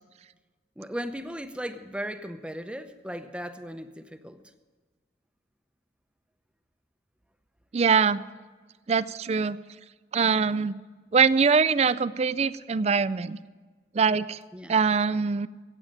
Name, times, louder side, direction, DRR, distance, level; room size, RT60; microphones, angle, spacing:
voice 1, 0.8-4.4 14.5-14.7, equal, 5° right, 9 dB, 0.7 m, -37 dB
voice 2, 7.7-8.2 8.9-9.6 10.1-10.7 11.1-13.4 13.9-14.4 14.7-15.5, right 5 dB, 35° right, 17 dB, 0.4 m, -23 dB
15.5 x 8.7 x 9.2 m, 1.4 s
head